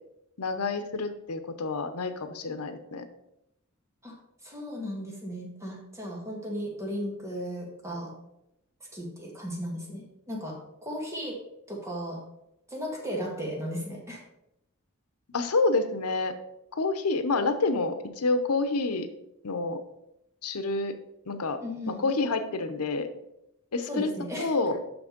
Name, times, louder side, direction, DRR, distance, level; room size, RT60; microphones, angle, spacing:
voice 1, 0.4-3.1 15.3-16.3 16.7-19.1 19.4-19.8 20.4-20.9 21.3-21.6 21.9-23.1 23.7-24.8, left 3 dB, 90° left, 9 dB, 0.8 m, -28 dB
voice 2, 4.4-8.1 8.9-11.4 11.7-12.2 12.7-14.2 21.6-22.1 23.9-24.5, equal, 15° right, -1 dB, 1.8 m, -35 dB
6.1 x 6.1 x 5.1 m, 0.85 s
head